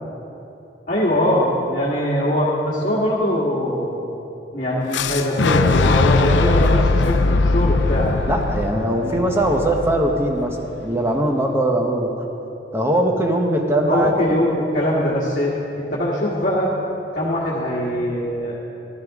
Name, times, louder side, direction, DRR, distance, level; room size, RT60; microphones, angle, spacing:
voice 1, 0.9-4.0 4.5-8.1 8.9-9.2 13.9-16.7 17.1-18.6, equal, 45° left, -7 dB, 1.7 m, -22 dB
Boom, 4.9-10.8, left 3 dB, 75° left, 0.5 m, -20 dB
voice 2, 8.3-12.1 12.7-14.1, right 1 dB, 15° right, 1 dB, 1.0 m, -20 dB
14.5 x 12.5 x 3.7 m, 2.9 s
head